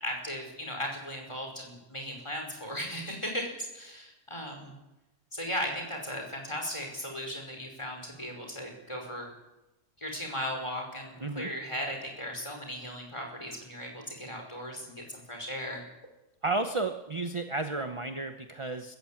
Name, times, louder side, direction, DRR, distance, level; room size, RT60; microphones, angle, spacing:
voice 1, 0.0-4.8 5.3-9.3 10.0-15.8, equal, 25° left, 2 dB, 5.2 m, -37 dB
voice 2, 11.2-11.5 16.4-19.0, right 3 dB, 25° right, 7 dB, 1.0 m, -32 dB
19.5 x 15.0 x 8.8 m, 0.99 s
omnidirectional pair, 1.3 m